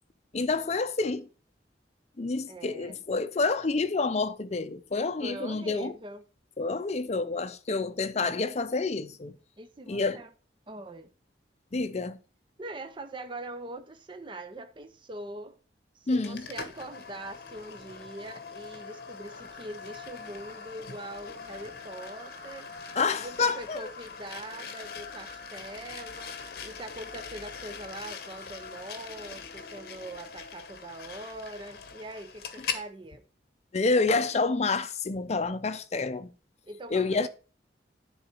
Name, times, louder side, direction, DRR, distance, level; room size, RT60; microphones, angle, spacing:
voice 1, 0.3-1.2 2.2-5.9 6.6-9.4 9.9-10.2 11.7-12.2 16.1-16.4 23.0-23.9 33.7-36.3 36.9-37.3, left 3 dB, 40° left, 0.5 m, -28 dB
voice 2, 2.5-3.0 5.2-6.2 9.6-10.3 10.7-11.1 12.6-15.5 15.9-22.7 23.1-26.3 26.6-33.2 36.6-37.3, right 2 dB, 30° right, 0.6 m, -42 dB
sound 1, 16.2-32.9, left 6 dB, 60° left, 0.9 m, -42 dB
10.0 x 3.9 x 4.5 m
head